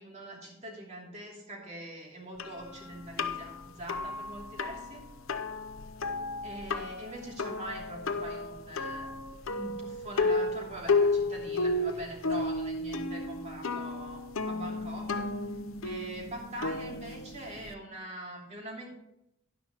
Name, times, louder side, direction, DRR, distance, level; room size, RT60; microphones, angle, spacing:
voice 1, 0.0-5.0 6.4-9.1 9.5-15.3 15.8-18.9, right 1 dB, 35° right, -2 dB, 2.8 m, -43 dB
sound 1, 2.4-17.7, left 3 dB, 80° left, 0.7 m, -33 dB
12.5 x 10.5 x 3.0 m, 0.82 s
head